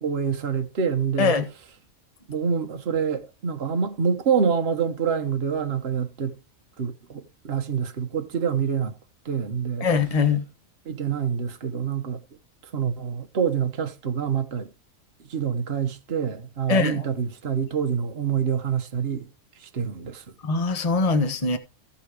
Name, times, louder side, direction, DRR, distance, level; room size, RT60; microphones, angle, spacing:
voice 1, 0.0-1.4 2.3-6.3 6.8-8.9 9.2-9.9 10.9-12.2 12.7-14.7 15.3-19.3 19.7-20.2, right 7 dB, 50° right, 1.3 m, -26 dB
voice 2, 9.8-10.4 16.7-17.0 20.4-21.6, left 4 dB, 25° left, 1.3 m, -22 dB
15.5 x 5.7 x 4.8 m
omnidirectional pair, 1.5 m